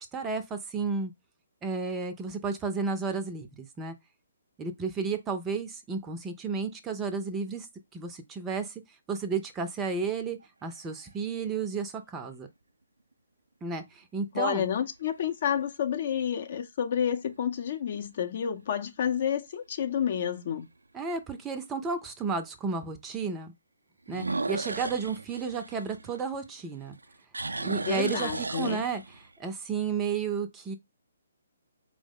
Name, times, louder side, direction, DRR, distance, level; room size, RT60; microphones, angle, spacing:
voice 1, 0.1-1.1 1.6-3.9 4.6-7.7 7.9-8.7 9.1-12.5 13.6-14.7 20.9-23.5 24.1-27.0 27.6-29.0 29.4-30.7, right 5 dB, 15° right, 0.5 m, -32 dB
sound 1, 10.4-11.1 11.8-11.9 17.1-17.5 18.0-18.1 18.7-18.8 19.0-19.1 20.6-20.7 24.1-26.6 26.9-29.3, right 3 dB, 75° right, 0.3 m, -35 dB
voice 2, 14.3-20.7 27.8-28.8, left 8 dB, 45° left, 0.6 m, -30 dB
4.7 x 2.0 x 3.6 m
figure-of-eight pair, 135°, 0 cm